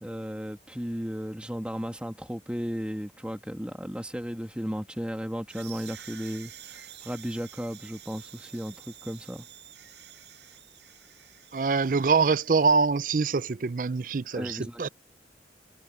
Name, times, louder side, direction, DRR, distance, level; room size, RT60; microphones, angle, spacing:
voice 1, 0.0-9.5 14.3-14.9, equal, 5° right, 1.7 m, -35 dB
sound 1, 5.5-12.7, right 11 dB, 80° right, 5.7 m, -49 dB
voice 2, 11.5-14.9, right 4 dB, 50° right, 0.5 m, -24 dB
head